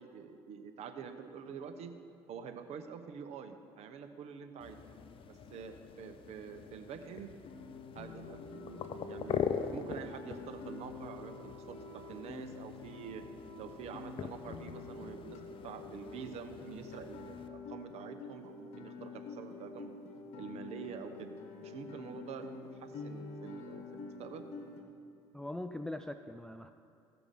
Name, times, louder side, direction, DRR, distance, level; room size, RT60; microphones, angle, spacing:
voice 1, 0.0-1.9 2.3-4.8 5.3-7.4 7.9-13.3 13.6-20.0 20.4-21.3 21.6-24.5, right 6 dB, 65° right, 7 dB, 1.0 m, -47 dB
sound 1, 4.6-17.5, left 7 dB, 50° left, 0.7 m, -43 dB
Guitar, 7.5-24.8, left 3 dB, 65° left, 1.3 m, -47 dB
voice 2, 25.3-26.7, left 1 dB, 5° left, 7 dB, 0.4 m, -41 dB
15.0 x 6.0 x 5.3 m, 2.5 s
supercardioid pair, 80°, 12 cm